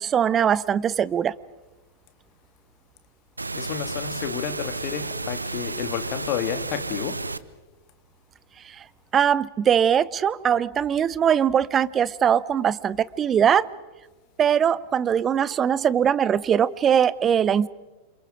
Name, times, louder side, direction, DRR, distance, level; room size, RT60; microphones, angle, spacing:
voice 1, 0.0-1.3 8.7-8.8 9.1-13.7 14.4-17.7, right 8 dB, 25° right, 0.7 m, -21 dB
sound 1, 3.4-7.4, right 3 dB, 80° right, 0.8 m, -32 dB
voice 2, 3.5-7.2, left 10 dB, 45° left, 2.3 m, -31 dB
28.5 x 27.0 x 5.0 m
figure-of-eight pair, 90°, 0 cm